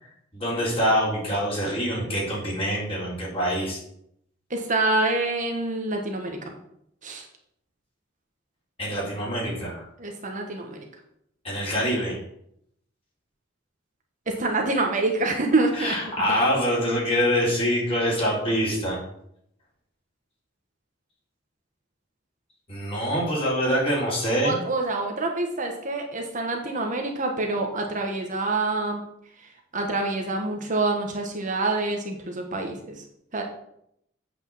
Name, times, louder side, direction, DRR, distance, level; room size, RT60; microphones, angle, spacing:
voice 1, 0.0-3.8 8.8-9.9 11.4-12.2 15.7-19.0 22.7-24.6, equal, 30° left, -5 dB, 4.2 m, -25 dB
voice 2, 4.5-6.4 7.0-7.2 10.0-10.8 14.3-16.0 24.4-29.0 29.7-32.9 33.3-33.4, right 2 dB, 40° right, 2 dB, 1.4 m, -26 dB
8.3 x 5.5 x 7.2 m, 0.73 s
head